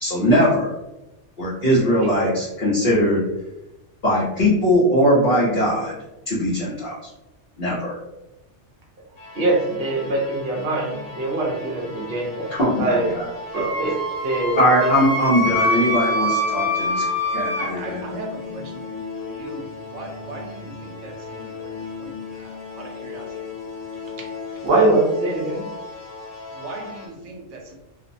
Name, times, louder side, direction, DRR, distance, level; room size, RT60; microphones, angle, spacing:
voice 1, 0.0-0.7 1.4-3.2 4.0-6.0 6.3-7.1 7.6-8.0 12.5-13.3 13.5-13.7 14.6-17.0 17.3-18.0, equal, 55° left, -8 dB, 0.8 m, -20 dB
voice 2, 2.0-2.4 9.3-13.1 13.5-13.9 14.2-14.9 24.6-25.7, right 2 dB, 60° right, -1 dB, 0.8 m, -23 dB
sound 1, 9.2-27.1, left 5 dB, 80° left, 0.9 m, -37 dB
Wind instrument woodwind instrument, 13.5-17.7, left 1 dB, 20° right, 0.7 m, -24 dB
voice 3, 17.5-23.5 26.5-27.7, right 2 dB, 85° right, 2 dB, 0.9 m, -39 dB
2.6 x 2.0 x 2.5 m, 0.94 s
omnidirectional pair, 1.2 m